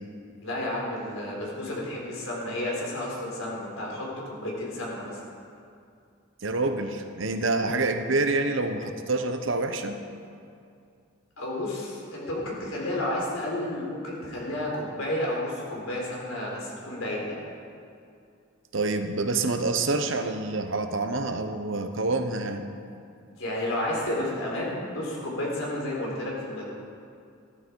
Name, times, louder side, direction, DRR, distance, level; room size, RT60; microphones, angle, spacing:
voice 1, 0.4-5.2 11.4-17.4 23.4-26.7, left 1 dB, 85° left, -3 dB, 4.1 m, -31 dB
voice 2, 6.4-10.0 18.7-22.6, right 3 dB, 70° right, 7 dB, 1.0 m, -27 dB
15.0 x 13.0 x 4.7 m, 2.4 s
head